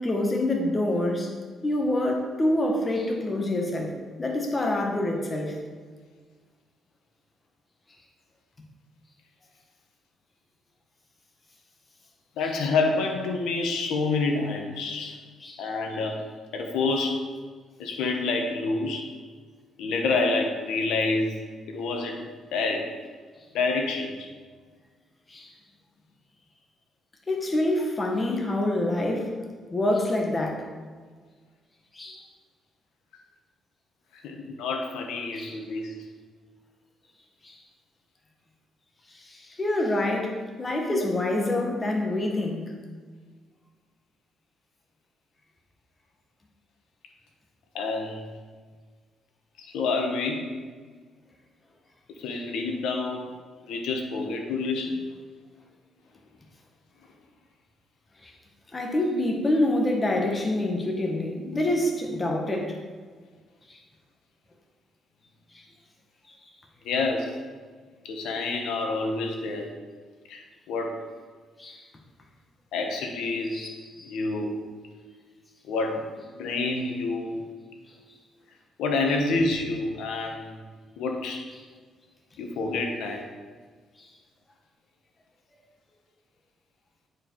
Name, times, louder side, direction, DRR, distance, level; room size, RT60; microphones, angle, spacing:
voice 1, 0.0-1.3 1.6-3.9 4.2-5.5 15.4-15.6 25.3-25.5 27.3-29.3 29.7-30.7 31.9-32.3 35.3-35.6 37.4-37.6 39.2-42.7 58.2-58.3 58.7-62.7 63.7-63.8 71.6-71.8 73.5-73.7 74.0-74.1, left 1 dB, 25° left, 1 dB, 1.5 m, -26 dB
voice 2, 12.4-15.1 15.6-16.2 16.5-17.2 17.8-19.1 19.8-21.4 21.7-22.2 22.5-22.9 23.5-24.3 34.1-35.9 40.9-41.1 47.7-48.2 49.6-50.4 52.2-53.3 53.7-55.1 59.1-59.2 66.8-67.4 68.0-69.7 70.3-71.0 72.7-73.7 74.0-74.6 75.7-76.0 76.3-77.4 78.8-80.7 81.0-81.4 82.4-83.3, left 3 dB, 85° left, 2 dB, 1.3 m, -28 dB
9.4 x 4.7 x 4.7 m, 1.5 s
cardioid pair, 90°, 0 cm